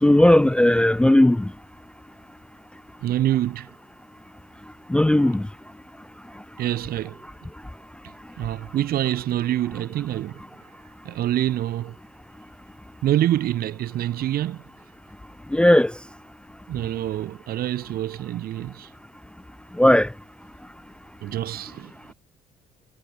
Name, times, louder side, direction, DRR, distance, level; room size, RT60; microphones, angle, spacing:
voice 1, 0.0-1.5 4.9-5.4 15.5-15.9 19.8-20.1, left 1 dB, 5° left, 0.5 m, -16 dB
voice 2, 3.0-3.8 6.6-7.2 8.0-10.7 11.0-12.0 13.0-14.6 16.7-18.9 21.2-21.9, right 13 dB, 70° right, 2.6 m, -26 dB
cardioid pair, 90°, 16 cm